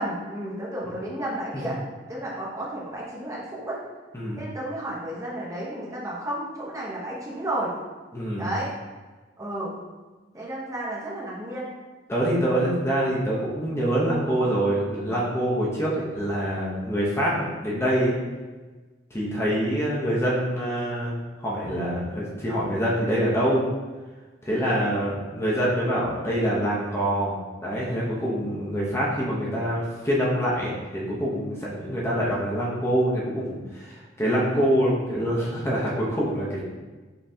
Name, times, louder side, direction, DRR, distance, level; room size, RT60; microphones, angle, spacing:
voice 1, 0.0-3.8 4.4-7.7 8.4-8.7 9.4-9.7 10.3-11.7 24.5-24.7, right 1 dB, 20° right, -5 dB, 0.8 m, -32 dB
voice 2, 8.1-8.5 12.1-18.1 19.1-23.6 24.4-36.6, equal, 15° left, -6 dB, 0.7 m, -25 dB
5.4 x 3.1 x 2.7 m, 1.3 s
head